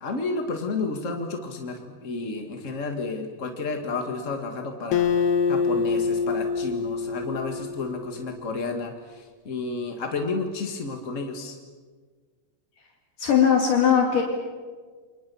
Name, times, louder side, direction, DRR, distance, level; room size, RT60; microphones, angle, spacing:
voice 1, 0.0-1.7 2.0-5.1 5.5-8.9 9.4-11.5, left 3 dB, 40° left, 4 dB, 1.1 m, -31 dB
Acoustic guitar, 4.9-8.4, left 5 dB, 85° left, 3.3 m, -25 dB
voice 2, 13.2-14.2, left 7 dB, 60° left, 1 dB, 3.7 m, -19 dB
29.0 x 24.0 x 7.0 m, 1.5 s
omnidirectional pair, 4.4 m